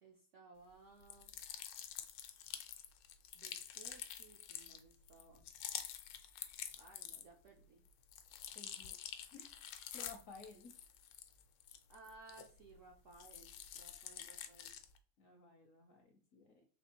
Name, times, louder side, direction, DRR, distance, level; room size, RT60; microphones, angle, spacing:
voice 1, 0.0-1.3 3.3-5.5 6.8-7.8 11.9-14.7, right 3 dB, 65° right, 0 dB, 0.7 m, -60 dB
sound 1, 1.0-7.5 7.9-12.8 13.1-15.0, left 10 dB, 85° left, 1.3 m, -48 dB
voice 2, 8.5-8.9 9.3-9.5 9.9-10.7 15.2-16.6, left 4 dB, 65° left, 4 dB, 0.8 m, -56 dB
4.3 x 3.1 x 2.8 m, 0.42 s
omnidirectional pair, 2.0 m